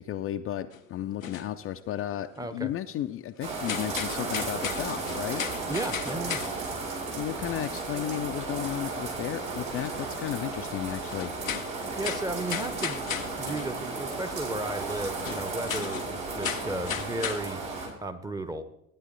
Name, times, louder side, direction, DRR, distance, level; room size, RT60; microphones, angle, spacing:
voice 1, 0.0-5.4 7.2-11.3, left 12 dB, 35° left, 7 dB, 0.5 m, -34 dB
sound 1, 0.7-0.8 1.2-2.4 2.8-3.1 3.5-7.0 7.4-7.5 8.1-8.2 8.3-8.4 9.0-9.1 9.6-9.7 10.4-10.5 11.0-14.0 14.3-14.4 15.1-17.9, left 8 dB, 90° left, 0.6 m, -36 dB
voice 2, 2.4-2.7 5.7-6.4 12.0-13.1 13.4-17.6 18.0-18.6, right 2 dB, 10° right, 10 dB, 0.9 m, -34 dB
sound 2, 3.4-17.9, right 3 dB, 70° right, 4.1 m, -34 dB
13.5 x 9.6 x 3.9 m, 0.80 s
figure-of-eight pair, 60°, 39 cm